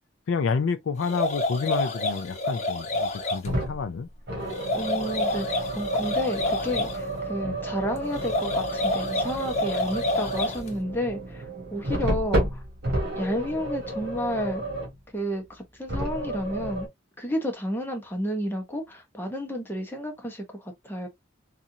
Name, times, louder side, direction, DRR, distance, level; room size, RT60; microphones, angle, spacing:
voice 1, 0.3-4.5 7.4-7.6 12.1-12.3, left 5 dB, 85° left, 0.4 m, -29 dB
sound 1, 1.0-3.5 4.5-7.0 8.1-10.7, left 2 dB, 35° left, 1.0 m, -28 dB
sound 2, 3.4-3.8 4.3-15.0 15.9-16.9, right 1 dB, 60° right, 1.7 m, -31 dB
voice 2, 4.7-11.5 11.7-12.6 13.2-14.6 15.1-16.9 17.2-21.1, equal, 10° left, 0.9 m, -31 dB
4.1 x 2.5 x 2.7 m
head